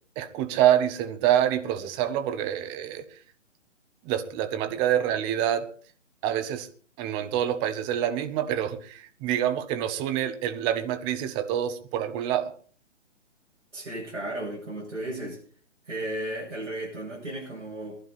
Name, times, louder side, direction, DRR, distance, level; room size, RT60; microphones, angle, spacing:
voice 1, 0.2-3.0 4.0-5.7 6.2-6.7 7.0-12.5, right 11 dB, 15° right, 0.7 m, -26 dB
voice 2, 13.7-15.4 15.9-18.0, right 1 dB, 80° right, 7.7 m, -34 dB
22.0 x 11.5 x 4.2 m
hypercardioid pair, 145°, 37 cm